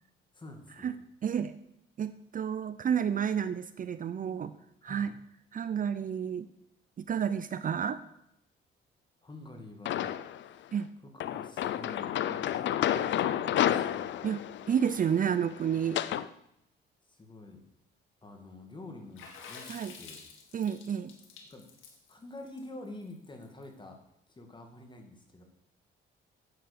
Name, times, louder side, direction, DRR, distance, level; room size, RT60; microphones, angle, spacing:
voice 1, 0.3-1.0 4.8-5.1 9.2-10.8 11.0-14.6 17.1-17.7 18.2-20.2 21.4-24.0 24.3-25.4, left 2 dB, 25° left, 4 dB, 2.4 m, -48 dB
voice 2, 1.2-1.5 2.0-4.5 4.8-5.1 5.5-6.5 7.0-8.0 10.7-10.9 14.2-16.0 19.7-19.9 20.5-21.1, right 8 dB, 45° right, 13 dB, 0.6 m, -30 dB
sound 1, 9.9-10.5 11.2-16.3, left 11 dB, 65° left, 0.6 m, -31 dB
Water / Splash splatter, 19.2-23.6, left 5 dB, 85° left, 2.1 m, -49 dB
10.5 x 7.9 x 6.9 m, 0.79 s
cardioid pair, 90°, 20 cm